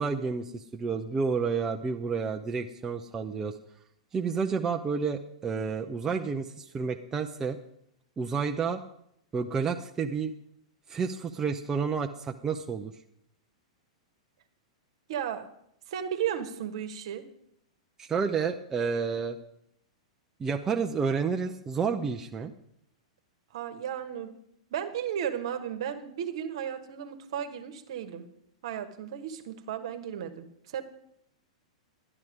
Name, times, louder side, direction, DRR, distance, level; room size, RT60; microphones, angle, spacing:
voice 1, 0.0-3.5 4.1-7.6 8.2-8.8 9.3-10.3 10.9-12.9 18.0-19.4 20.4-22.5, right 5 dB, 15° right, 3 dB, 0.6 m, -30 dB
voice 2, 15.1-15.5 15.9-17.3 23.5-24.4 24.7-28.2 28.6-30.8, right 9 dB, 55° right, 9 dB, 1.3 m, -34 dB
12.0 x 11.0 x 5.0 m, 0.74 s
figure-of-eight pair, 100°, 3 cm